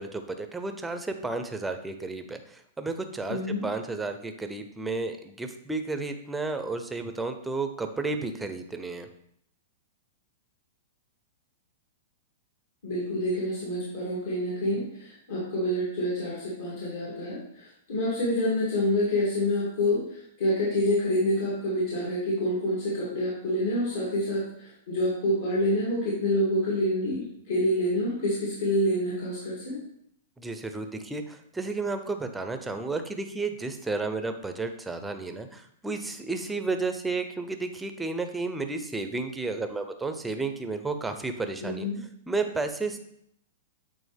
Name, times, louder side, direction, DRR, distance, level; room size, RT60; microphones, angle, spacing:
voice 1, 0.0-9.1 30.4-41.9 42.3-43.0, right 3 dB, 5° right, 7 dB, 0.5 m, -32 dB
voice 2, 3.3-3.6 12.8-20.0 20.4-29.8 41.6-42.0, left 1 dB, 70° left, -7 dB, 2.4 m, -27 dB
8.4 x 3.8 x 3.4 m, 0.72 s
hypercardioid pair, 155°, 0 cm